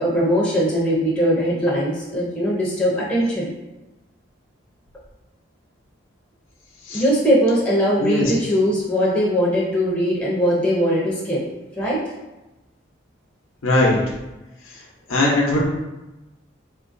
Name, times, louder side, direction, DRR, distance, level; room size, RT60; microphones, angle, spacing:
voice 1, 0.0-3.5 6.9-11.4 11.7-12.0, equal, 5° left, -6 dB, 0.5 m, -20 dB
voice 2, 8.0-8.3 13.6-13.9 15.1-15.7, left 1 dB, 90° left, -3 dB, 0.7 m, -19 dB
3.7 x 2.5 x 2.5 m, 1.0 s
head